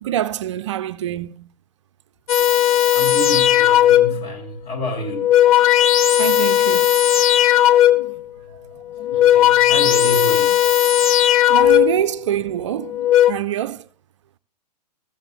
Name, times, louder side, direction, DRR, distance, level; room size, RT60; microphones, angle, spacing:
voice 1, 0.0-1.4 6.2-6.9 11.5-12.9 13.3-13.8, right 11 dB, 45° right, 0.5 m, -25 dB
sound 1, 2.3-4.3 5.0-8.2 8.9-12.1 12.8-13.3, left 12 dB, 60° left, 0.8 m, -16 dB
voice 2, 2.9-5.3 9.1-10.6, equal, 30° left, 2.3 m, -29 dB
14.5 x 14.5 x 2.2 m
figure-of-eight pair, 110°, 21 cm